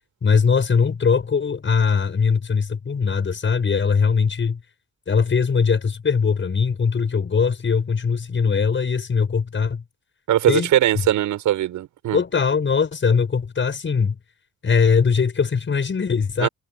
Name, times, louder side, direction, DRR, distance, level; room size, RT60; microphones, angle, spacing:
voice 1, 0.2-4.6 5.1-9.8 10.5-10.7 12.1-14.2 14.6-16.5, left 5 dB, 40° left, 6.5 m, -20 dB
voice 2, 10.3-12.2 16.4-16.5, right 12 dB, 80° right, 7.2 m, -20 dB
cardioid pair, 90°, 30 cm